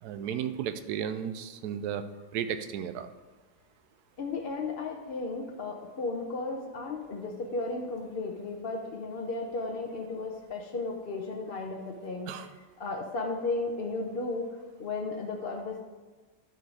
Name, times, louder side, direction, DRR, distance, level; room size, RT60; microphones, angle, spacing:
voice 1, 0.0-2.0 2.3-3.1 12.3-12.5, right 9 dB, 85° right, 10 dB, 1.1 m, -34 dB
voice 2, 4.2-12.4 12.8-14.5 14.8-15.8, left 3 dB, 45° left, 1 dB, 0.8 m, -34 dB
11.5 x 4.7 x 4.8 m, 1.3 s
omnidirectional pair, 1.7 m